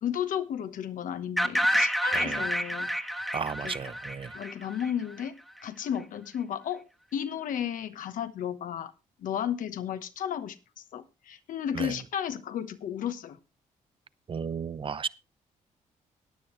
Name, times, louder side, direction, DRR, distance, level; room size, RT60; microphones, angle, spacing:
voice 1, 0.0-3.3 3.6-3.7 4.3-5.3 5.6-8.9 9.2-10.6 10.9-13.4, left 9 dB, 75° left, 1.1 m, -33 dB
sound 1, 1.4-5.2, equal, ahead, 1.3 m, -28 dB
voice 2, 2.1-2.5 3.3-4.4 11.7-12.0 14.3-15.1, right 6 dB, 40° right, 0.7 m, -34 dB
15.5 x 9.9 x 3.2 m
cardioid pair, 75°, 14 cm